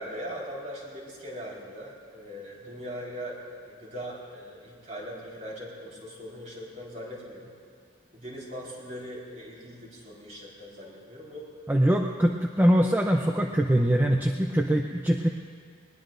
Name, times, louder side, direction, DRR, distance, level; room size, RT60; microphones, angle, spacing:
voice 1, 0.0-3.4 3.6-7.6 8.1-11.5, equal, 35° right, -4 dB, 4.4 m, -40 dB
voice 2, 11.7-15.3, equal, 10° right, 1 dB, 0.6 m, -23 dB
22.5 x 20.0 x 2.6 m, 2.1 s
head